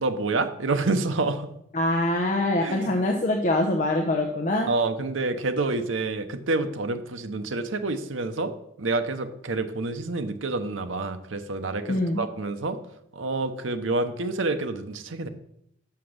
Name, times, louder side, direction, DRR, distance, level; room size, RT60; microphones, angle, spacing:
voice 1, 0.0-1.5 2.6-2.9 4.7-8.5 8.8-12.8 13.1-15.3, right 3 dB, 85° right, 8 dB, 0.8 m, -28 dB
voice 2, 1.7-4.7 11.9-12.2, left 1 dB, 40° left, 1 dB, 0.8 m, -24 dB
5.8 x 5.8 x 6.5 m, 0.75 s
head